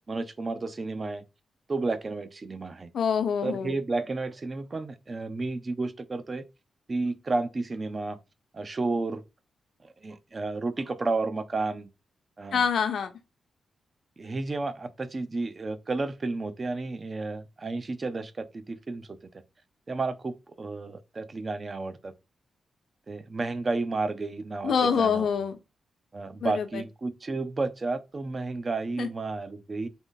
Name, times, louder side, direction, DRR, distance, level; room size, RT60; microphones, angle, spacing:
voice 1, 0.1-1.2 1.7-2.9 3.4-6.4 6.9-8.2 8.5-9.2 10.0-11.9 12.4-12.6 14.2-19.1 19.9-22.1 23.1-25.3 26.1-29.9, right 3 dB, 40° right, 0.6 m, -32 dB
voice 2, 2.9-3.7 12.5-13.1 24.6-25.6 26.4-26.8 29.0-29.1, left 6 dB, 75° left, 0.8 m, -26 dB
3.9 x 3.0 x 4.0 m
cardioid pair, 75°, 0 cm